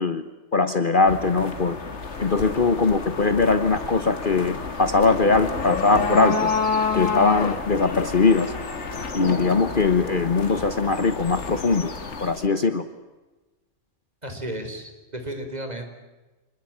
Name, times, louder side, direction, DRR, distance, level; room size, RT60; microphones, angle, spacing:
voice 1, 0.0-1.8 2.2-6.5 6.9-8.5 9.1-11.9 12.2-12.8, left 4 dB, 40° left, 10 dB, 1.3 m, -21 dB
sound 1, 1.1-12.3, left 3 dB, 60° left, 2.3 m, -34 dB
sound 2, 2.0-12.5, left 5 dB, 75° left, 2.2 m, -30 dB
voice 2, 14.2-15.9, right 1 dB, 30° right, 5 dB, 4.3 m, -33 dB
27.0 x 20.5 x 8.8 m, 1.1 s
omnidirectional pair, 1.4 m